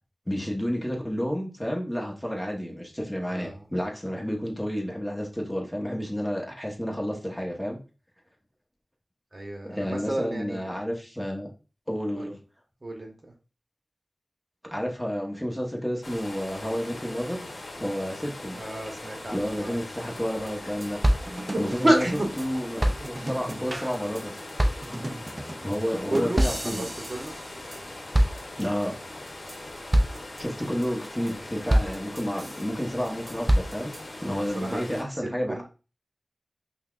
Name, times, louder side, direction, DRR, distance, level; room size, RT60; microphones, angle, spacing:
voice 1, 0.3-7.8 9.6-11.5 11.9-12.4 14.7-17.5 17.8-18.6 19.3-21.0 21.6-22.0 22.4-24.4 25.0-25.2 25.6-26.9 28.6-29.0 30.4-33.9 34.2-35.6, equal, 10° left, -1 dB, 1.0 m, -30 dB
voice 2, 3.2-3.7 9.3-10.8 12.1-12.3 12.8-13.3 18.6-19.8 21.5-22.3 26.1-27.3 34.3-35.6, right 1 dB, 40° right, 1 dB, 0.9 m, -30 dB
sound 1, 16.0-35.0, left 1 dB, 60° left, 0.9 m, -41 dB
sound 2, 20.2-20.3 20.5-20.6 20.8-22.5 22.8-27.8 28.1-28.8 29.3-29.6 29.9-30.4 30.8-31.3 31.7-32.6 33.1-34.0, right 1 dB, 25° right, 0.4 m, -27 dB
5.6 x 2.3 x 2.4 m, 0.33 s
wide cardioid pair, 65°, 0 cm